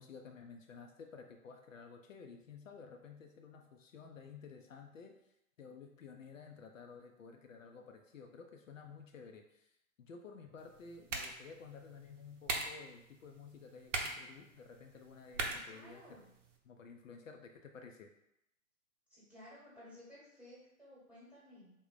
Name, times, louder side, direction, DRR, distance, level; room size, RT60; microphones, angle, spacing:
voice 1, 0.0-5.2 5.6-16.0 16.6-18.1, left 5 dB, 65° left, 4 dB, 0.5 m, -53 dB
sound 1, 10.6-16.6, right 3 dB, 60° right, 0.7 m, -43 dB
voice 2, 15.5-16.3 19.1-21.7, left 1 dB, 5° right, -8 dB, 1.0 m, -56 dB
3.4 x 2.1 x 3.9 m, 0.84 s
figure-of-eight pair, 115°, 42 cm